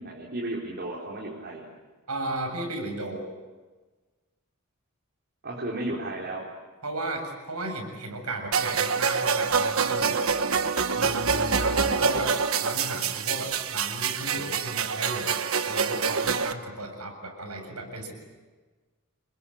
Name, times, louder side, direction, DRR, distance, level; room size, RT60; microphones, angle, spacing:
voice 1, 0.0-1.7 5.4-6.5, right 1 dB, 50° right, -3 dB, 4.2 m, -34 dB
voice 2, 2.1-3.3 6.8-10.4 10.9-12.3 12.6-15.4 15.7-18.1, right 2 dB, 90° right, 4 dB, 7.5 m, -34 dB
sound 1, 8.5-16.5, right 5 dB, 65° right, 1.4 m, -26 dB
29.0 x 22.0 x 8.7 m, 1.3 s
head